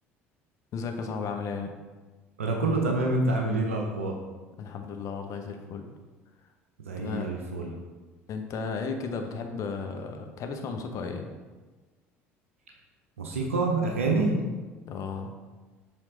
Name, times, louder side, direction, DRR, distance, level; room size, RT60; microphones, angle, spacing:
voice 1, 0.7-1.7 4.6-5.9 7.0-7.3 8.3-11.3 14.9-15.3, left 5 dB, 50° left, 5 dB, 0.8 m, -34 dB
voice 2, 2.4-4.1 6.8-7.7 13.2-14.4, right 2 dB, 85° right, 1 dB, 0.7 m, -27 dB
7.5 x 3.6 x 3.8 m, 1.3 s
hypercardioid pair, 65°, 7 cm